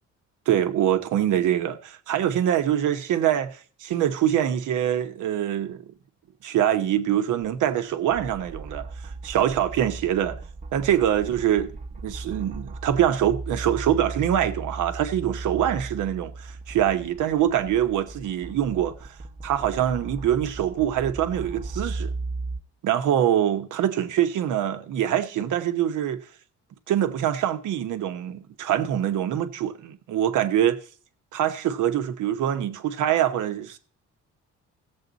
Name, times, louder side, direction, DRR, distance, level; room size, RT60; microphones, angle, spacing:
voice 1, 0.5-5.9 6.4-10.4 10.7-11.7 12.0-19.1 19.4-22.1 22.8-26.2 26.9-30.8 31.3-33.8, right 10 dB, 80° right, 1.1 m, -24 dB
sound 1, 8.1-22.6, right 3 dB, 25° right, 0.9 m, -37 dB
15.5 x 7.4 x 4.0 m
cardioid pair, 90°, 30 cm